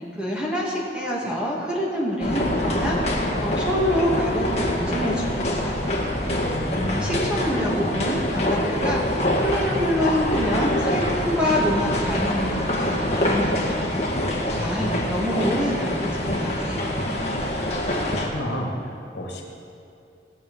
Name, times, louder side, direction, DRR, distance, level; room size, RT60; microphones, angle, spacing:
voice 1, 0.0-5.9 6.7-13.8 14.4-16.9, equal, 5° right, -5 dB, 2.3 m, -26 dB
sound 1, 2.2-18.3, left 1 dB, 35° left, 1.9 m, -25 dB
voice 2, 6.4-7.3 14.5-15.0 17.7-19.4, left 1 dB, 75° left, 0 dB, 2.1 m, -32 dB
19.5 x 7.6 x 5.5 m, 2.6 s
head